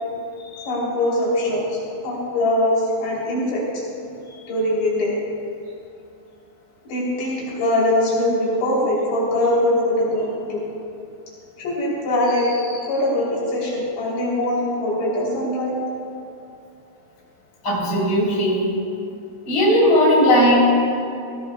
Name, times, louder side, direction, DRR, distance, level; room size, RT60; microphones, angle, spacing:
voice 1, 0.4-3.8 4.3-5.2 6.9-10.6 11.6-15.7, left 1 dB, 80° left, -6 dB, 5.7 m, -22 dB
voice 2, 17.6-18.7 19.4-20.6, equal, 30° left, -6 dB, 3.8 m, -17 dB
18.5 x 17.0 x 2.4 m, 2.7 s
omnidirectional pair, 4.7 m